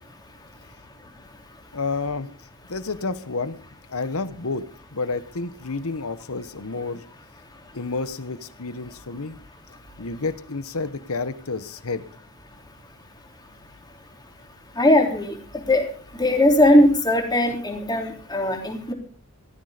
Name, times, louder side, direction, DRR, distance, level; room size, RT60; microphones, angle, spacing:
voice 1, 1.7-2.3 2.7-3.6 3.9-7.0 7.7-9.4 10.0-12.0, left 3 dB, 70° left, 14 dB, 1.2 m, -30 dB
voice 2, 14.8-15.8 16.2-18.9, left 1 dB, 20° left, 2 dB, 3.5 m, -19 dB
16.0 x 13.5 x 5.1 m, 0.43 s
head